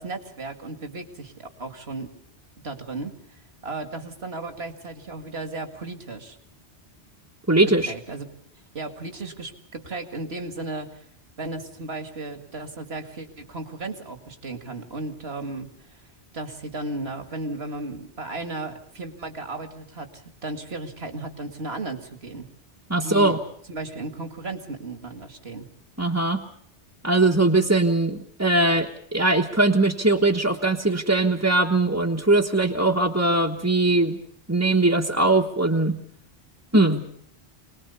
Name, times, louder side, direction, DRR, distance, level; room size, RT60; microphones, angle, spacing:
voice 1, 0.0-2.1 2.6-6.4 7.9-8.3 8.7-11.0 11.4-15.7 16.3-22.5 23.0-23.4 23.7-25.7, right 2 dB, 65° right, 6 dB, 2.4 m, -35 dB
voice 2, 7.5-7.9 22.9-23.4 26.0-26.4 27.0-34.2 34.5-36.0 36.7-37.0, right 2 dB, 15° right, -1 dB, 1.3 m, -21 dB
25.5 x 20.0 x 7.0 m, 0.66 s
omnidirectional pair, 1.1 m